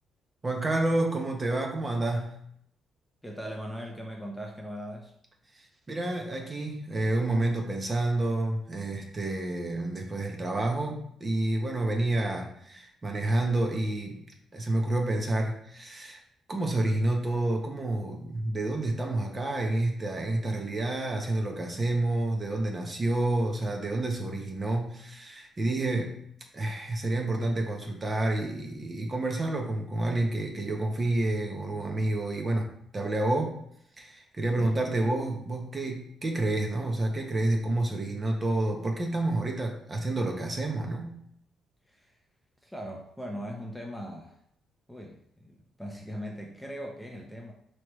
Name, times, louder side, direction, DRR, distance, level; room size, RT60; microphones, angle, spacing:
voice 1, 0.4-2.4 5.5-14.2 14.5-16.2 16.5-26.2 26.5-33.6 34.0-41.1, right 2 dB, 30° right, 2 dB, 0.9 m, -29 dB
voice 2, 3.2-5.1 34.4-34.8 41.9-42.2 42.6-44.4 44.9-47.5, equal, ahead, 0 dB, 0.7 m, -40 dB
4.7 x 3.2 x 3.1 m, 0.70 s
cardioid pair, 90°, 0 cm